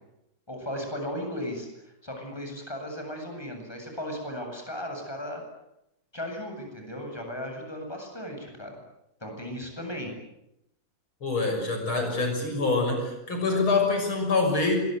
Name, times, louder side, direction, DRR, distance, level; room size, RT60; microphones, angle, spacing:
voice 1, 0.5-1.7 2.0-5.4 6.1-8.7 9.2-10.1, equal, 10° left, 3 dB, 7.8 m, -36 dB
voice 2, 11.2-14.8, left 3 dB, 85° left, 4 dB, 7.2 m, -25 dB
25.5 x 22.5 x 9.3 m, 0.84 s
omnidirectional pair, 2.2 m